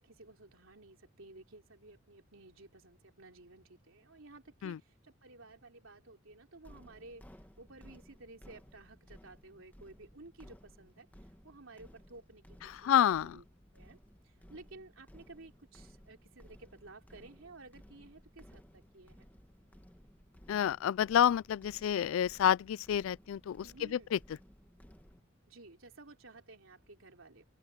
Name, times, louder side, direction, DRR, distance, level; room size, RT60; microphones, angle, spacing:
voice 1, 0.0-7.3 7.6-11.1 11.4-13.0 13.2-13.4 13.7-14.0 14.2-19.3 23.6-24.1 25.5-27.4, right 2 dB, 75° right, 3.6 m, -54 dB
Low Rumbling, 6.6-25.2, equal, 10° left, 1.4 m, -58 dB
voice 2, 12.6-13.4 20.5-24.2, left 9 dB, 75° left, 0.3 m, -29 dB
open air
head